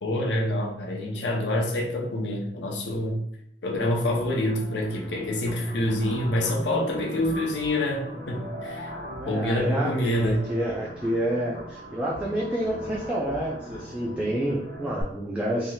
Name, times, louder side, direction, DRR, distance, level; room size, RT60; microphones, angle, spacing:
voice 1, 0.0-3.2 3.6-8.9 9.3-10.5, left 1 dB, 75° left, 0 dB, 0.6 m, -26 dB
sound 1, 3.8-15.0, equal, 65° right, 0.8 m, -40 dB
voice 2, 9.2-15.7, right 1 dB, 5° right, -5 dB, 0.3 m, -29 dB
3.3 x 2.7 x 2.2 m, 0.74 s
head